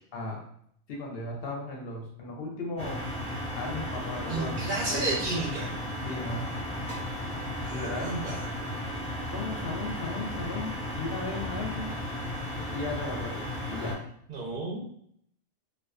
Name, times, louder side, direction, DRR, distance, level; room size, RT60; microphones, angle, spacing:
voice 1, 0.9-3.0 3.5-4.6 4.9-5.2 6.1-6.5 7.7-8.2 9.3-12.0 12.7-14.0, left 2 dB, 60° left, 0 dB, 0.7 m, -36 dB
sound 1, 2.8-13.9, left 1 dB, 10° left, 0.3 m, -35 dB
voice 2, 4.3-5.7 7.6-8.5 14.3-14.8, right 2 dB, 55° right, -4 dB, 0.6 m, -32 dB
2.3 x 2.2 x 2.3 m, 0.68 s
omnidirectional pair, 1.3 m